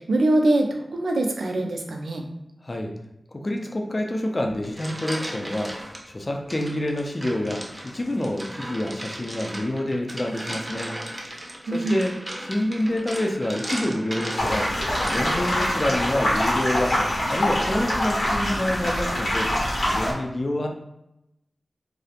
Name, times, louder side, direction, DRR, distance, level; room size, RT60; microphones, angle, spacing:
voice 1, 0.0-2.2 11.7-12.0, right 1 dB, 90° right, 3 dB, 0.3 m, -23 dB
voice 2, 2.6-3.0 3.3-11.0 11.7-14.7 15.0-17.0 17.3-20.7, left 1 dB, 45° left, 3 dB, 0.4 m, -27 dB
sound 1, 4.5-6.0 6.5-15.7, right 1 dB, 25° right, 0.5 m, -36 dB
sound 2, 14.4-20.1, left 1 dB, 85° left, 0.8 m, -24 dB
2.4 x 2.0 x 2.8 m, 0.86 s
cardioid pair, 45°, 0 cm